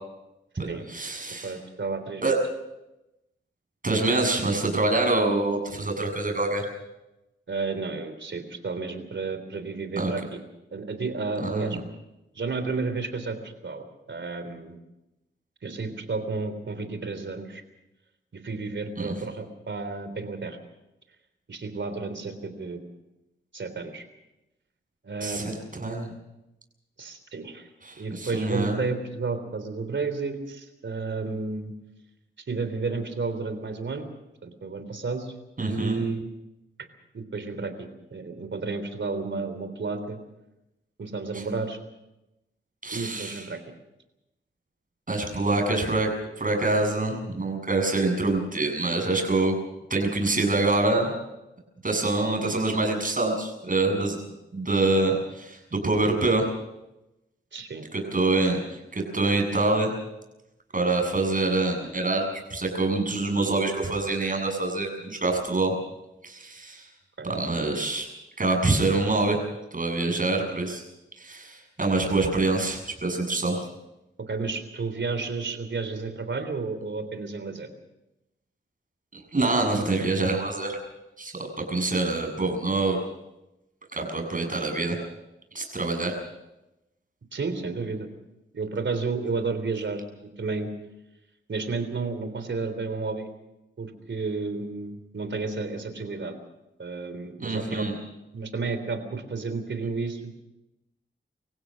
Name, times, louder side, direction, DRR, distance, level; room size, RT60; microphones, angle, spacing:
voice 1, 0.6-1.5 2.2-2.3 3.8-6.7 10.0-10.1 11.4-11.8 19.0-19.1 25.2-26.1 27.8-28.8 35.6-36.0 41.3-41.4 42.8-43.5 45.1-46.1 46.4-49.6 49.9-51.1 51.8-54.2 54.5-56.5 57.9-59.9 60.7-65.7 66.2-66.9 67.2-68.1 68.4-69.4 69.7-70.8 71.2-73.6 79.1-80.8 81.2-83.0 83.9-85.0 85.5-86.1 97.4-97.9, right 2 dB, 40° right, 3 dB, 7.3 m, -25 dB
voice 2, 1.4-2.2 7.5-10.4 10.7-11.8 12.3-14.8 15.6-17.6 18.3-20.6 21.5-22.8 23.5-24.1 25.0-25.5 27.0-27.7 28.0-31.7 32.5-34.1 34.4-35.3 35.7-36.3 37.1-40.2 41.0-41.8 42.9-43.6 57.5-57.9 67.2-67.3 74.3-77.7 84.3-84.4 87.3-88.1 88.5-90.0 90.4-90.7 91.5-93.3 93.8-96.4 96.8-97.9 98.3-100.4, right 4 dB, 60° right, 10 dB, 3.5 m, -32 dB
25.5 x 16.0 x 6.5 m, 0.94 s
cardioid pair, 65°, 21 cm